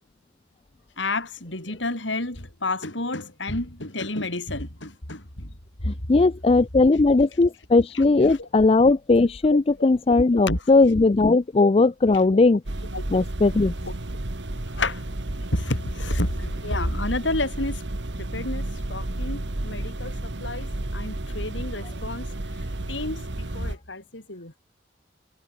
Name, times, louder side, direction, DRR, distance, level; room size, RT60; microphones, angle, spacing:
voice 1, 1.0-5.5 6.0-6.3 6.8-7.5 7.9-8.0 9.5-10.9 11.3-11.4 12.1-12.4 12.9-13.2 13.9-14.0 14.7-15.0 15.5-17.8 18.2-22.3 22.9-24.6, left 2 dB, 85° left, 5.9 m, -31 dB
voice 2, 5.9-12.6 13.1-13.7, left 3 dB, 30° left, 0.4 m, -18 dB
sound 1, 12.7-23.8, right 1 dB, 70° right, 1.6 m, -32 dB
head